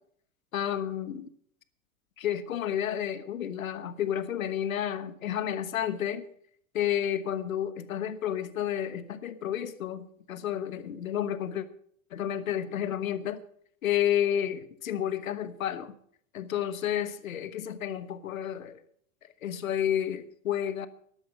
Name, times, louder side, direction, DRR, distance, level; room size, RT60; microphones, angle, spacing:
voice 1, 0.5-1.3 2.2-6.3 6.7-11.6 12.1-13.4 13.8-16.0 16.3-18.8 19.4-20.9, left 10 dB, 75° left, 13 dB, 1.3 m, -31 dB
13.5 x 11.5 x 5.3 m, 0.64 s
hypercardioid pair, 95°, 41 cm